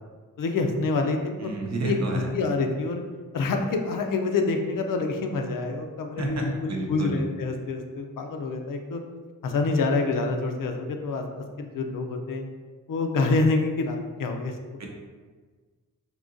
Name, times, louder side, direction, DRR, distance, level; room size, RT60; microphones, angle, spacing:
voice 1, 0.4-1.5 1.8-3.0 3.3-9.0 9.4-12.4 12.9-14.5, left 3 dB, 75° left, 4 dB, 0.5 m, -27 dB
voice 2, 1.4-2.3 6.2-7.3 14.8-14.9, right 2 dB, 55° right, 0 dB, 0.6 m, -30 dB
3.7 x 2.7 x 2.5 m, 1.4 s
wide cardioid pair, 95°, 33 cm